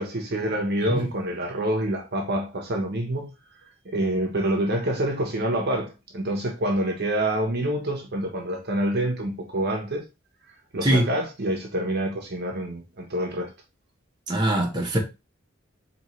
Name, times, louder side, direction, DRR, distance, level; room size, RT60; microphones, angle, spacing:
voice 1, 0.0-3.3 3.8-10.0 10.7-13.5, right 1 dB, 55° right, 1.0 m, -27 dB
voice 2, 14.3-15.0, right 1 dB, 20° right, 1.0 m, -22 dB
4.3 x 3.1 x 3.1 m
head